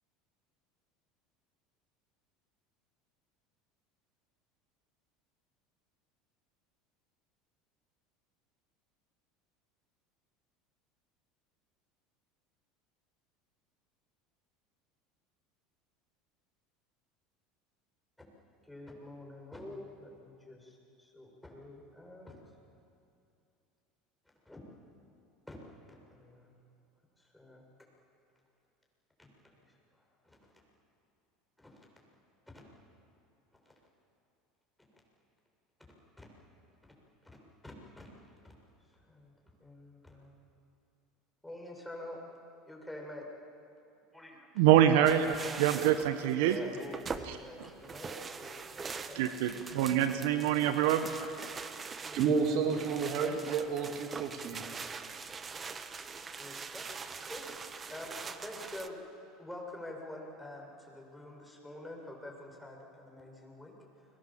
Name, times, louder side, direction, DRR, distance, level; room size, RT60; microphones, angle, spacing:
voice 1, 18.6-22.3 24.5-24.6 25.5-25.6 25.9-26.6 27.2-27.6 29.2-29.3 29.9-30.4 31.6-31.8 32.5-32.6 36.2-36.3 37.2-38.1 38.4-38.5 39.1-39.3 39.6-40.3 41.4-42.2 42.7-43.2 44.1-44.5 46.3-49.6 52.0-52.7 56.3-56.9 57.2-59.0 59.4-64.1, left 1 dB, 5° left, -1 dB, 7.0 m, -47 dB
voice 2, 44.6-46.6 47.3-47.4 49.1-51.1, right 11 dB, 75° right, 9 dB, 1.4 m, -25 dB
sound 1, 45.0-58.9, right 5 dB, 30° right, 1.4 m, -43 dB
voice 3, 52.1-54.7, right 5 dB, 60° right, 4 dB, 2.5 m, -31 dB
29.5 x 23.0 x 7.6 m, 2.6 s
hypercardioid pair, 85°, 0 cm